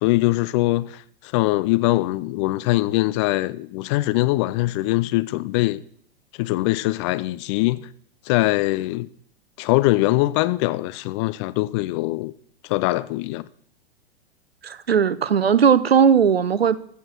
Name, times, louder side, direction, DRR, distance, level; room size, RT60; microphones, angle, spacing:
voice 1, 0.0-5.8 6.4-7.9 8.2-9.1 9.6-12.3 12.6-13.5, left 19 dB, 30° left, 0.4 m, -22 dB
voice 2, 14.6-16.8, right 7 dB, 80° right, 0.7 m, -17 dB
15.0 x 6.6 x 6.1 m
figure-of-eight pair, 100°, 30 cm